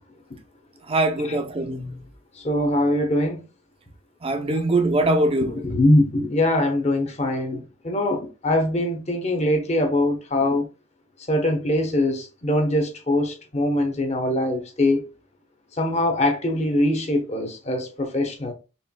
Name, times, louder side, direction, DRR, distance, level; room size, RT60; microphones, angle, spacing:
voice 1, 0.9-2.0 4.2-5.5, right 2 dB, 25° right, 0.5 m, -22 dB
voice 2, 2.4-3.4 4.5-4.6 5.5-10.7 11.3-15.0 15.8-18.5, left 1 dB, 30° left, 0.9 m, -22 dB
4.4 x 3.2 x 2.2 m
head